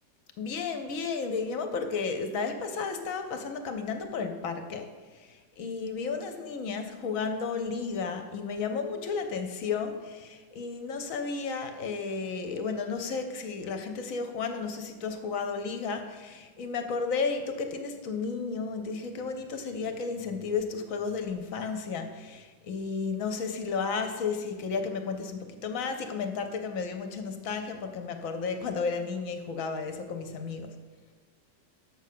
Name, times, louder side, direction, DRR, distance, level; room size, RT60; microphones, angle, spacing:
voice 1, 0.4-4.9 5.1-30.7, left 5 dB, 60° left, 6 dB, 0.9 m, -33 dB
6.7 x 5.3 x 6.6 m, 1.4 s
omnidirectional pair, 1.9 m